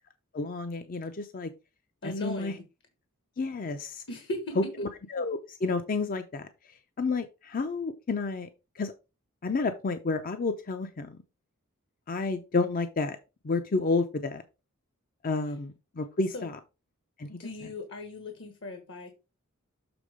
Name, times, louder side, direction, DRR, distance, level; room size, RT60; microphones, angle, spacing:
voice 1, 0.3-1.5 2.0-2.5 3.4-4.0 4.6-6.5 7.0-8.5 8.8-8.9 9.4-11.2 12.1-13.2 13.4-14.4 15.2-16.6 17.2-17.7, left 3 dB, 40° left, 0.5 m, -30 dB
voice 2, 2.0-2.6 4.1-4.5 16.3-16.5 17.3-19.1, left 2 dB, 60° left, 1.2 m, -38 dB
7.0 x 3.6 x 4.9 m
head